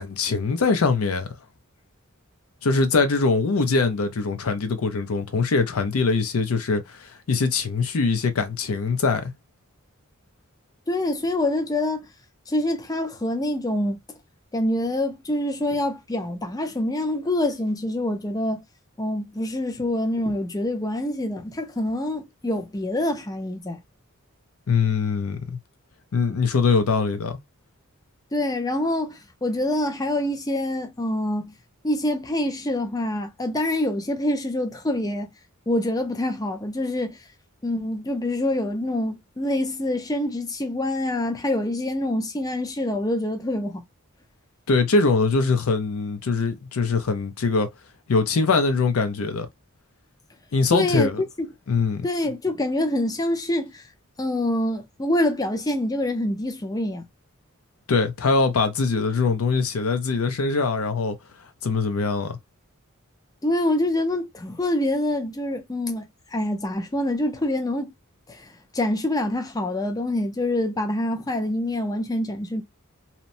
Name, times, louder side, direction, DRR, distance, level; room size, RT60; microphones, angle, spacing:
voice 1, 0.0-1.3 2.6-9.3 24.7-25.6 26.1-27.4 44.7-47.7 48.1-49.5 50.5-51.2 51.7-52.1 57.9-61.2 61.6-62.4, left 4 dB, 80° left, 0.6 m, -22 dB
voice 2, 10.9-12.1 12.5-14.0 14.5-18.6 19.0-23.8 28.3-31.5 31.8-35.3 35.7-37.2 37.6-43.8 50.7-51.1 51.4-51.5 52.0-53.8 54.2-57.1 63.4-67.9 68.3-72.6, left 1 dB, 15° left, 0.5 m, -26 dB
2.9 x 2.0 x 2.5 m
head